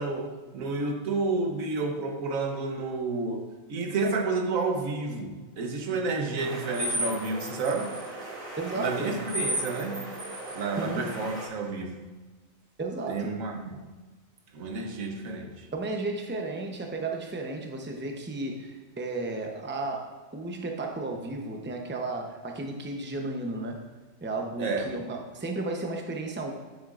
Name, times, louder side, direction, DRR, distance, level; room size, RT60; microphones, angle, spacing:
voice 1, 0.0-8.0 8.7-10.2 10.5-12.0 13.1-13.8 14.5-15.7 24.6-24.9, right 3 dB, 90° right, 1.3 m, -30 dB
sound 1, 6.4-11.5, right 1 dB, 70° right, 2.2 m, -35 dB
voice 2, 8.6-9.2 10.8-11.1 12.8-13.3 15.7-23.8 24.2-26.5, right 2 dB, 10° right, 0.6 m, -33 dB
10.0 x 7.3 x 2.5 m
omnidirectional pair, 1.4 m